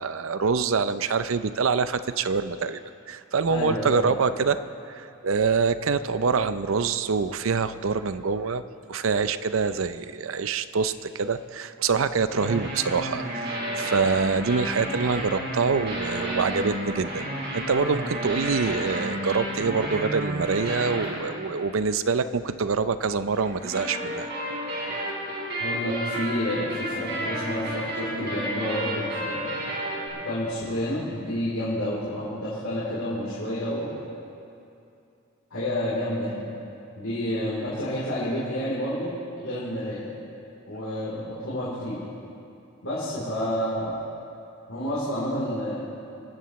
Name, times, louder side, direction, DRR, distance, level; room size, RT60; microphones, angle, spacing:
voice 1, 0.0-2.8 3.1-4.6 4.9-8.6 8.9-17.3 17.5-24.3, right 5 dB, 75° right, 12 dB, 0.6 m, -25 dB
voice 2, 3.5-4.1 25.6-29.5 30.2-34.0 35.5-36.5 36.9-40.1 40.7-42.0 42.8-43.9 44.7-45.9, equal, 80° left, -9 dB, 3.5 m, -29 dB
sound 1, 12.3-21.8 23.3-30.1, right 1 dB, 50° right, 4.2 m, -31 dB
26.5 x 13.0 x 3.1 m, 2.7 s
head